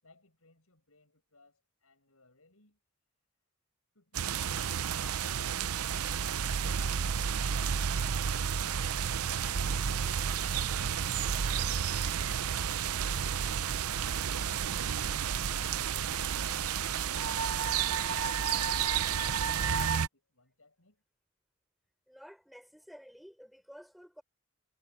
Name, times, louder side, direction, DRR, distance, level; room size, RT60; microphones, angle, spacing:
voice 1, 0.0-2.8 16.3-21.0, left 2 dB, 80° left, 6.9 m, -65 dB
sound 1, 4.1-20.1, right 7 dB, 85° right, 0.6 m, -31 dB
voice 2, 22.1-24.2, equal, ahead, 4.0 m, -52 dB
head